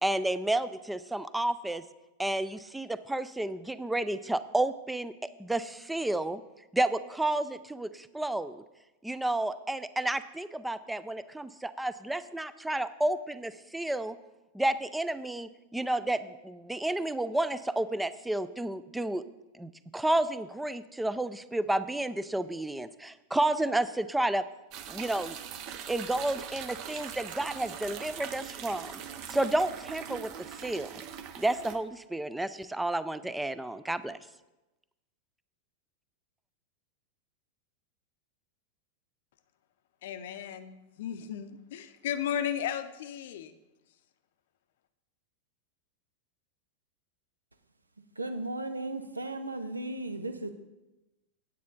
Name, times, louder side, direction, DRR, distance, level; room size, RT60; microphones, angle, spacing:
voice 1, 0.0-1.8 2.2-5.1 5.4-6.4 6.7-8.6 9.0-14.2 14.5-19.2 19.5-24.4 24.9-25.4 25.9-29.0 29.3-31.0 31.4-34.2, right 1 dB, 5° right, 0.4 m, -31 dB
sound 1, 24.7-31.8, right 8 dB, 40° right, 0.7 m, -42 dB
voice 2, 40.0-43.6, left 9 dB, 55° left, 0.6 m, -35 dB
voice 3, 48.2-50.5, right 2 dB, 80° right, 0.7 m, -35 dB
9.4 x 8.4 x 4.0 m
figure-of-eight pair, 90°, 0 cm